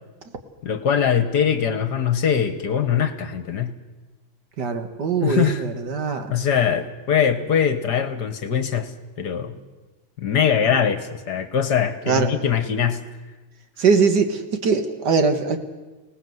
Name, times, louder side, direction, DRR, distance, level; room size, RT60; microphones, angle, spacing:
voice 1, 0.6-3.7 5.2-5.6 6.3-8.9 9.2-9.5 10.2-13.0, left 8 dB, 60° left, 11 dB, 1.7 m, -22 dB
voice 2, 4.6-6.3 12.1-12.3 13.8-15.6, right 5 dB, 60° right, 7 dB, 2.1 m, -21 dB
25.0 x 18.5 x 7.9 m, 1.2 s
omnidirectional pair, 2.2 m